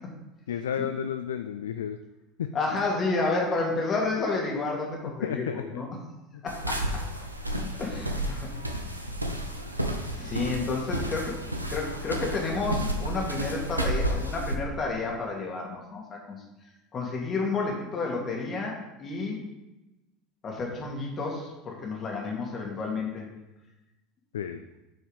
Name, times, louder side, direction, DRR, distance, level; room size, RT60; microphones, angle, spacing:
voice 1, 0.5-2.0 2.4-2.5 5.2-5.8 24.3-24.6, left 8 dB, 70° left, 9 dB, 0.3 m, -32 dB
voice 2, 2.5-5.9 6.4-7.0 7.8-8.5 10.1-11.4 11.7-16.4 16.9-19.4 20.4-23.3, left 3 dB, 35° left, -1 dB, 2.5 m, -30 dB
sound 1, 6.5-14.5, right 1 dB, 90° right, 0.8 m, -31 dB
9.3 x 5.4 x 5.1 m, 0.98 s
figure-of-eight pair, 75°, 0 cm